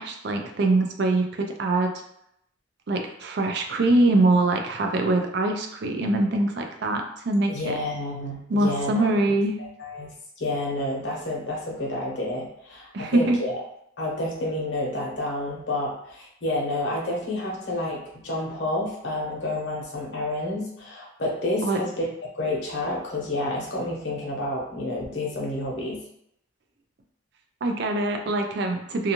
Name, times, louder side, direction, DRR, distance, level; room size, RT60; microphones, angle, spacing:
voice 1, 0.0-1.9 2.9-7.7 8.5-9.6 12.9-13.4 21.6-21.8 27.6-29.1, right 2 dB, 55° right, 3 dB, 0.4 m, -23 dB
voice 2, 7.5-9.2 9.6-13.6 14.0-22.0 22.3-26.0, left 1 dB, 60° left, -2 dB, 0.8 m, -29 dB
2.5 x 2.4 x 2.8 m, 0.75 s
head